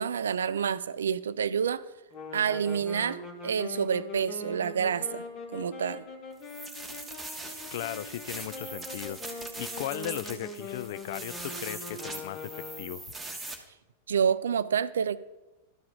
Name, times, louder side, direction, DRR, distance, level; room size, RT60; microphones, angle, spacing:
voice 1, 0.0-1.8 2.3-5.2 5.5-6.0 14.1-15.2, right 7 dB, 65° right, 17 dB, 0.4 m, -28 dB
sound 1, 2.1-13.1, left 3 dB, 35° left, 1.4 m, -42 dB
sound 2, 6.4-13.5, right 2 dB, 5° right, 1.4 m, -41 dB
voice 2, 7.7-9.2 9.6-13.0, left 14 dB, 55° left, 16 dB, 0.3 m, -37 dB
12.5 x 4.8 x 5.3 m, 1.1 s
figure-of-eight pair, 90°, 0 cm